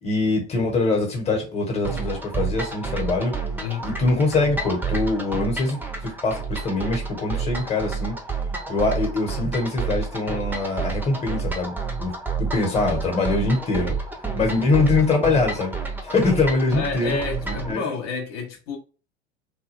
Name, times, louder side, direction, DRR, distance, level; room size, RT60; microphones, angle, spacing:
voice 1, 0.0-3.4 3.8-8.2 8.7-11.7 12.0-14.0 14.4-17.8, left 3 dB, 20° left, 1.1 m, -23 dB
sound 1, 1.8-17.7, right 4 dB, 5° right, 0.6 m, -30 dB
voice 2, 16.7-18.8, left 4 dB, 60° left, 0.8 m, -30 dB
2.3 x 2.2 x 3.2 m
hypercardioid pair, 80°, 34 cm